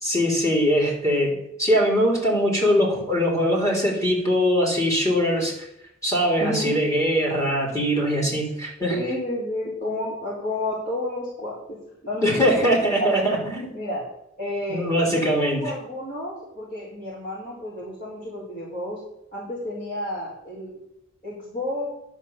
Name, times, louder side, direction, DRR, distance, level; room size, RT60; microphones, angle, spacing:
voice 1, 0.0-5.6 6.0-9.0 12.2-13.7 14.7-15.6, equal, 15° left, -4 dB, 3.5 m, -22 dB
voice 2, 6.4-6.7 8.9-12.5 13.0-13.2 13.7-14.0 14.4-19.0 19.3-20.8 21.2-21.9, left 1 dB, 45° left, -9 dB, 4.5 m, -30 dB
11.5 x 5.3 x 7.2 m, 0.82 s
head